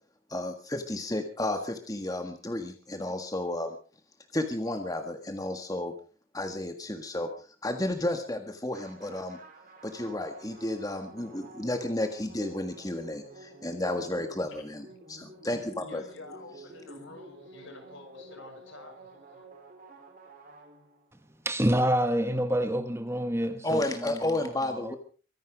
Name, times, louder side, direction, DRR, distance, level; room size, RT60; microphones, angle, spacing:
voice 1, 0.3-3.7 4.3-5.9 6.3-9.4 9.8-16.0 23.6-25.0, left 1 dB, 15° left, 1.6 m, -32 dB
sound 1, 8.7-21.3, right 1 dB, 40° right, 4.7 m, -50 dB
voice 2, 15.8-19.5, left 3 dB, 70° left, 6.2 m, -48 dB
voice 3, 21.4-25.0, equal, 10° right, 1.2 m, -28 dB
24.0 x 11.0 x 5.1 m
head